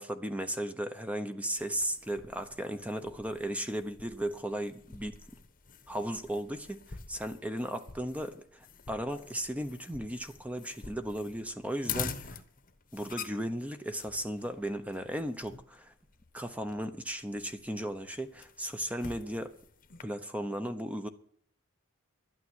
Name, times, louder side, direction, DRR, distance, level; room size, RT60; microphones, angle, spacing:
voice 1, 0.0-5.2 5.9-12.4 12.9-15.9 16.3-19.5 20.0-21.1, right 1 dB, 5° right, 8 dB, 0.8 m, -36 dB
sound 1, 1.6-20.0, left 6 dB, 40° left, 1.1 m, -46 dB
12.0 x 9.0 x 9.6 m, 0.62 s
head